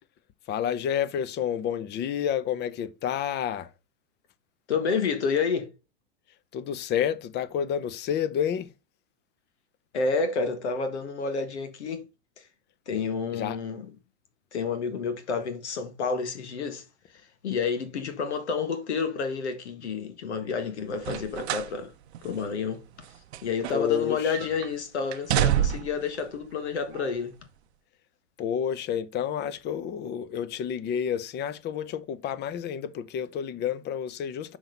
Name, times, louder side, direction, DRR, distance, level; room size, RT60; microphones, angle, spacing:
voice 1, 0.5-3.7 6.5-8.7 12.9-13.0 13.3-13.6 23.7-24.5 28.4-34.6, left 9 dB, 30° left, 0.8 m, -30 dB
voice 2, 4.7-5.7 9.9-12.0 12.9-13.9 14.5-16.8 17.4-21.9 22.2-22.8 23.4-27.3, left 5 dB, 85° left, 1.7 m, -29 dB
sound 1, 21.0-21.8 22.1-22.3 23.0-24.1 24.3-24.7 25.1-26.0 26.9-27.0, right 11 dB, 75° right, 0.7 m, -27 dB
6.3 x 5.9 x 3.9 m
hypercardioid pair, 120°, 33 cm